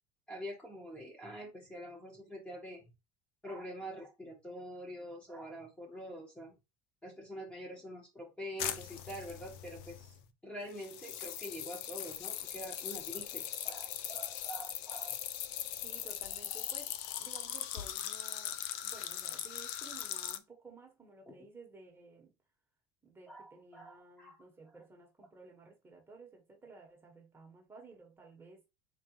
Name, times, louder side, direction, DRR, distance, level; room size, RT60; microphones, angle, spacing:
voice 1, 0.3-2.8 3.4-6.5 7.0-10.1 10.4-15.1 21.3-21.4 23.3-24.4, equal, 10° left, 1.3 m, -45 dB
sound 1, 8.6-10.2 10.7-20.4, left 11 dB, 70° left, 0.5 m, -40 dB
voice 2, 15.8-22.3 23.0-28.6, right 3 dB, 15° right, 1.4 m, -55 dB
4.0 x 3.2 x 3.1 m
supercardioid pair, 120°, 13 cm